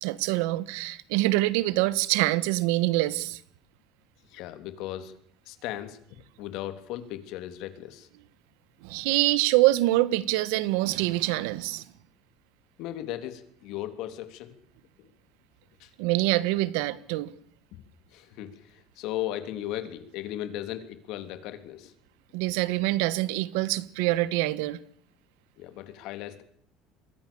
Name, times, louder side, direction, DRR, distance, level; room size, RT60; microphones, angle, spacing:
voice 1, 0.0-3.4 8.8-11.8 16.0-17.3 22.3-24.8, right 18 dB, 85° right, 1.4 m, -25 dB
voice 2, 4.3-5.1 5.5-6.0 6.4-8.1 12.8-14.5 15.8-15.9 17.7-17.8 18.1-21.9 25.6-26.4, left 13 dB, 55° left, 3.2 m, -36 dB
27.0 x 22.5 x 7.1 m
cardioid pair, 170°, 0 cm